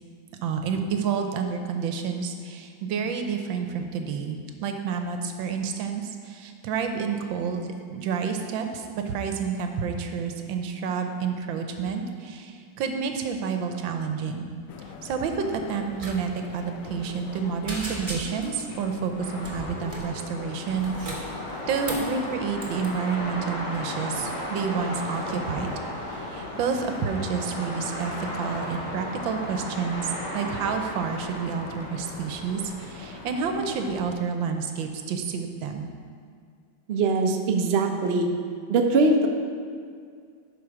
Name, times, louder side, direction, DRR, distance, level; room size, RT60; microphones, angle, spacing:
voice 1, 0.4-14.5 15.0-21.4 21.7-25.7 26.1-35.9, right 6 dB, 85° right, 5 dB, 1.5 m, -29 dB
sound 1, 14.7-34.2, left 6 dB, 85° left, 0.7 m, -43 dB
sound 2, 16.0-16.2 16.4-16.6 17.0-17.4 17.7-18.6 19.4-20.1 20.7-22.1 22.6-22.9, right 1 dB, 20° right, 1.0 m, -36 dB
sound 3, 19.2-34.0, equal, 20° left, 1.5 m, -36 dB
voice 2, 36.9-38.3 38.7-39.3, right 3 dB, 70° right, 3 dB, 0.6 m, -22 dB
11.0 x 4.4 x 4.7 m, 2.2 s
omnidirectional pair, 2.1 m